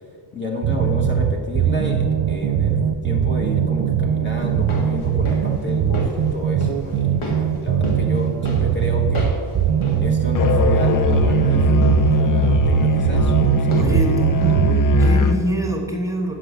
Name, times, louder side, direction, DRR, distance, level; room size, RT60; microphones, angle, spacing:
voice 1, 0.3-9.3 10.0-14.3, left 3 dB, 25° left, -1 dB, 1.2 m, -30 dB
sound 1, 0.6-15.1, right 8 dB, 65° right, 0.6 m, -20 dB
sound 2, 4.4-15.4 15.7-15.8, equal, 85° left, 1.9 m, -34 dB
Musical instrument, 10.3-15.5, left 1 dB, 45° left, 0.5 m, -20 dB
voice 2, 13.7-16.4, right 1 dB, 5° right, 1 dB, 1.3 m, -24 dB
8.1 x 6.1 x 8.1 m, 2.1 s
wide cardioid pair, 150°, 48 cm